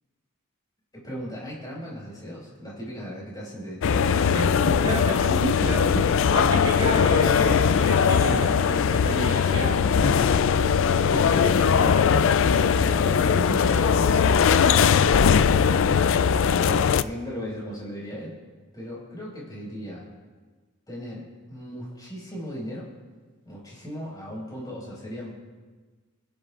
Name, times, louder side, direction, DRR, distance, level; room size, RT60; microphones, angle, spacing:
voice 1, 0.9-5.0 9.9-10.6 16.5-18.4 18.7-20.1 20.9-22.9 23.5-25.3, equal, 20° left, -5 dB, 5.2 m, -37 dB
sound 1, 3.8-17.0, left 6 dB, 60° left, 0.3 m, -20 dB
voice 2, 4.3-9.9 11.0-13.9, right 1 dB, 20° right, -4 dB, 3.7 m, -33 dB
29.0 x 10.5 x 2.5 m, 1.4 s
head